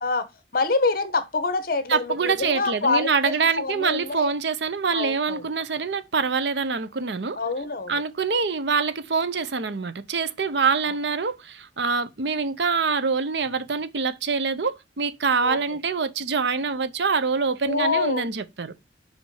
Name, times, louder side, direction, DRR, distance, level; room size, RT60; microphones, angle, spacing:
voice 1, 0.0-4.3 4.9-5.5 7.3-8.0 10.8-10.9 15.4-15.6 17.6-18.3, left 3 dB, 55° left, 1.0 m, -26 dB
voice 2, 1.9-7.4 7.9-18.7, right 5 dB, 70° right, 0.7 m, -25 dB
5.2 x 5.1 x 4.7 m
head